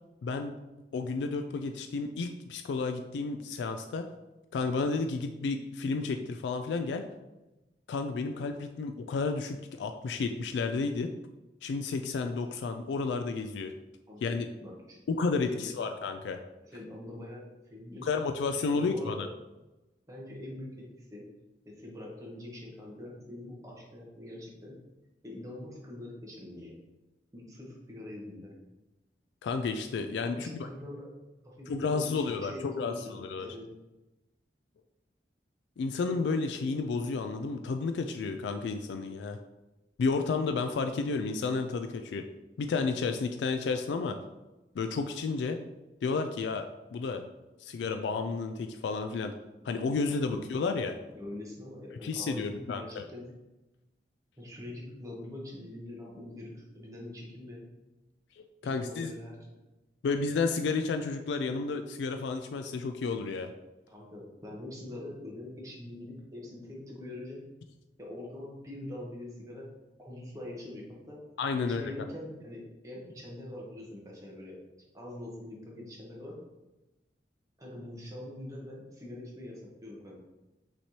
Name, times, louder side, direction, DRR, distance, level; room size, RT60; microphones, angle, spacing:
voice 1, 0.2-0.5 0.9-4.1 4.5-7.0 7.9-11.1 11.6-13.7 14.2-14.5 15.1-16.4 18.0-19.3 29.4-30.7 31.7-33.5 35.8-39.4 40.0-42.2 42.6-44.2 44.8-45.6 46.0-47.2 47.6-49.3 49.6-51.0 52.0-53.0 58.6-59.1 60.0-63.5 71.4-71.8, left 4 dB, 85° left, 6 dB, 0.3 m, -31 dB
voice 2, 14.1-15.0 15.5-15.7 16.6-17.4 17.7-18.1 18.7-19.3 20.1-21.2 21.6-24.7 25.2-26.8 27.3-28.5 30.2-31.1 31.4-33.7 50.1-50.4 51.1-53.2 54.4-57.6 58.6-59.5 63.9-67.4 68.0-69.7 70.0-71.2 71.5-74.6 74.9-76.4 77.6-80.2, left 1 dB, 20° right, -3 dB, 1.0 m, -44 dB
5.9 x 3.1 x 2.8 m, 1.0 s
head